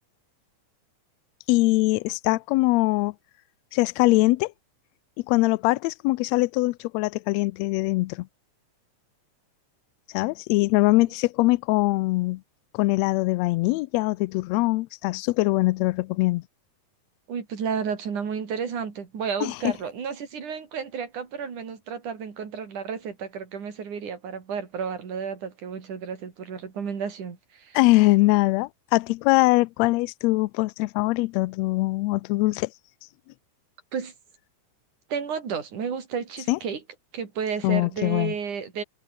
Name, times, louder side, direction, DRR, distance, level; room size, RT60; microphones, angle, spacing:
voice 1, 1.5-3.1 3.7-4.5 5.3-8.3 10.1-12.4 12.7-16.4 19.4-19.7 27.7-32.7 36.5-36.6 37.6-38.3, left 21 dB, 80° left, 1.6 m, -22 dB
voice 2, 17.3-27.8 33.9-34.1 35.1-36.8 37.1-38.8, right 6 dB, 90° right, 5.0 m, -32 dB
omnidirectional pair, 3.4 m